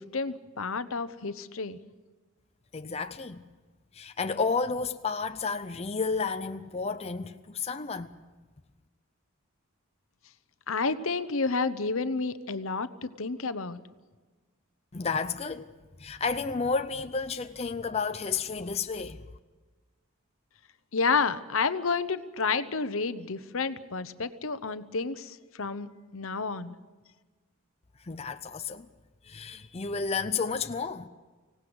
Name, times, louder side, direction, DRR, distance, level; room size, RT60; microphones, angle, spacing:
voice 1, 0.0-1.8 10.7-13.8 20.9-25.9 26.1-26.7, left 4 dB, 70° left, 0.9 m, -30 dB
voice 2, 2.7-3.5 3.9-8.2 14.9-15.7 16.0-19.2 28.0-28.9 29.2-31.1, left 4 dB, 30° left, 0.6 m, -31 dB
25.0 x 17.5 x 8.0 m
head